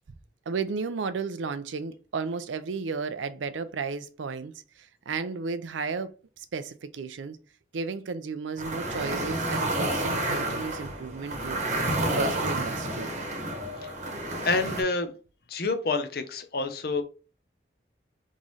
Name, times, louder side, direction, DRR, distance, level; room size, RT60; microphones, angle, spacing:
voice 1, 0.5-6.1 6.4-7.4 7.7-11.6 12.0-13.1, right 4 dB, 85° right, 0.5 m, -33 dB
sound 1, 8.6-14.8, right 1 dB, 40° right, 1.0 m, -30 dB
voice 2, 14.4-15.1 15.5-17.0, left 3 dB, 55° left, 0.7 m, -28 dB
3.6 x 3.1 x 4.0 m
head